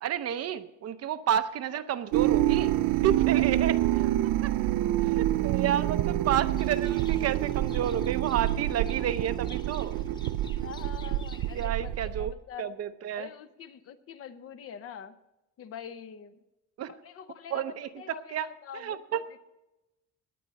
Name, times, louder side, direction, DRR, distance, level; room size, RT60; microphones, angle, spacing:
voice 1, 0.0-2.7 3.0-4.1 4.4-4.5 5.0-10.0 11.5-12.3 12.6-13.3 16.8-16.9 17.5-18.5 18.7-19.2, right 10 dB, 50° right, 11 dB, 0.7 m, -31 dB
sound 1, 2.1-12.3, right 14 dB, 85° right, 0.5 m, -27 dB
Livestock farm animals working animals, 6.6-11.7, left 2 dB, 15° left, 0.7 m, -52 dB
voice 2, 10.6-12.7 13.1-15.1 15.6-16.4 16.9-17.6 18.0-19.4, left 8 dB, 45° left, 11 dB, 0.8 m, -44 dB
18.0 x 10.0 x 4.1 m, 0.97 s
cardioid pair, 180°, 32 cm